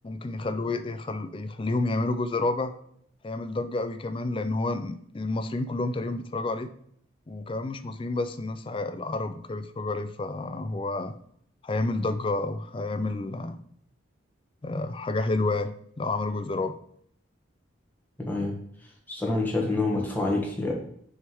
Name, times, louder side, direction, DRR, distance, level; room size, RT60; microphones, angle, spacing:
voice 1, 0.0-2.7 3.2-6.7 7.3-11.1 11.6-13.6 14.6-15.7 16.0-16.8, left 2 dB, 25° left, 10 dB, 0.4 m, -29 dB
voice 2, 18.2-18.5 19.1-20.7, left 2 dB, 10° left, -2 dB, 1.4 m, -27 dB
6.5 x 3.4 x 4.5 m, 0.66 s
head